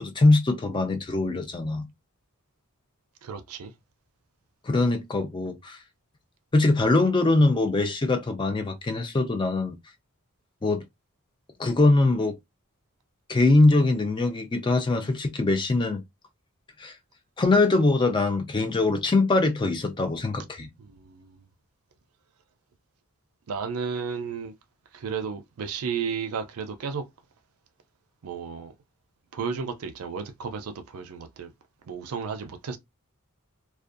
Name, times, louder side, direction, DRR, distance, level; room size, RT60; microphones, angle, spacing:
voice 1, 0.0-1.8 4.6-5.8 6.5-9.8 10.6-10.8 11.6-12.3 13.3-16.0 16.8-16.9 17.4-20.7, left 2 dB, 20° left, 0.4 m, -22 dB
voice 2, 3.2-3.7 20.8-21.4 23.5-24.5 24.9-27.1 28.2-28.7 29.3-31.5 31.8-32.8, right 6 dB, 80° right, 0.5 m, -33 dB
2.5 x 2.2 x 2.4 m
head